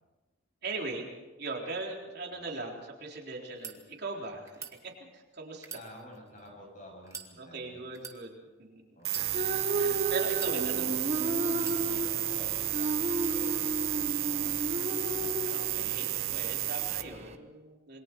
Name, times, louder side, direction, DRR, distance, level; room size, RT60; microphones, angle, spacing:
voice 1, 0.6-1.1 1.4-5.7 7.4-8.8 9.7-10.9 11.9-12.2 15.4-18.0, right 3 dB, 50° right, -1 dB, 3.9 m, -40 dB
sound 1, 3.4-3.7 4.5-4.7 5.6-6.5 7.0-7.3 7.9-8.2 9.0-9.7 10.3-11.0 11.6-11.8, right 5 dB, 15° right, 1.6 m, -44 dB
voice 2, 5.7-7.8 8.9-9.3 10.4-14.7 15.1-15.7, left 1 dB, 40° left, 0 dB, 7.9 m, -51 dB
sound 2, 9.0-17.0, right 16 dB, 80° right, 1.0 m, -32 dB
sound 3, 9.1-17.4, right 1 dB, 30° right, 1.2 m, -34 dB
27.5 x 22.5 x 4.7 m, 1.1 s
head